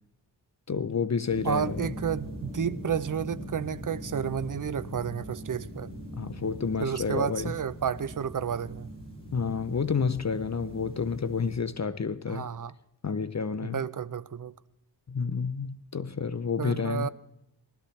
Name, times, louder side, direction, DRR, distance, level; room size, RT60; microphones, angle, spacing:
voice 1, 0.7-1.9 6.1-7.5 9.3-12.5 13.0-13.8 15.1-17.1, left 5 dB, 40° left, 0.6 m, -30 dB
sound 1, 1.3-11.6, equal, 15° left, 6.8 m, -41 dB
voice 2, 1.4-5.9 6.8-8.9 12.3-12.7 13.6-14.5 16.6-17.1, right 7 dB, 50° right, 0.6 m, -31 dB
19.5 x 13.0 x 3.2 m
wide cardioid pair, 55°, 42 cm